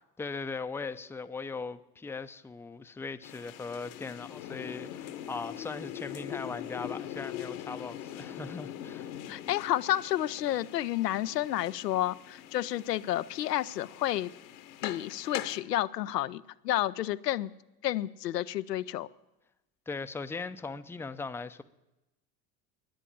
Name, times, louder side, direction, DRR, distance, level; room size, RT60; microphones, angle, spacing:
voice 1, 0.2-9.1 19.9-21.6, left 4 dB, 5° left, 0.5 m, -39 dB
sound 1, 3.2-15.6, left 11 dB, 60° left, 1.2 m, -42 dB
voice 2, 9.3-14.3 14.8-17.5 17.8-19.1, left 13 dB, 85° left, 0.6 m, -30 dB
10.5 x 9.9 x 10.0 m
figure-of-eight pair, 70°, 47 cm